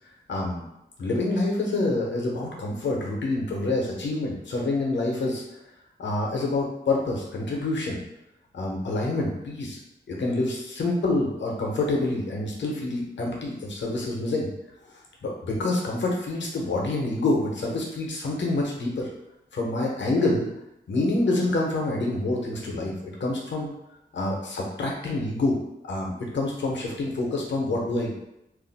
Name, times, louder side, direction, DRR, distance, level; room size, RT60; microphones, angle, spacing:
voice 1, 0.3-0.6 1.0-5.4 6.0-8.0 8.5-9.8 10.1-14.5 15.2-19.1 19.5-20.5 20.9-23.7 24.1-25.6 25.8-28.1, left 2 dB, 80° left, -2 dB, 0.7 m, -27 dB
2.5 x 2.1 x 3.9 m, 0.86 s
cardioid pair, 65°, 18 cm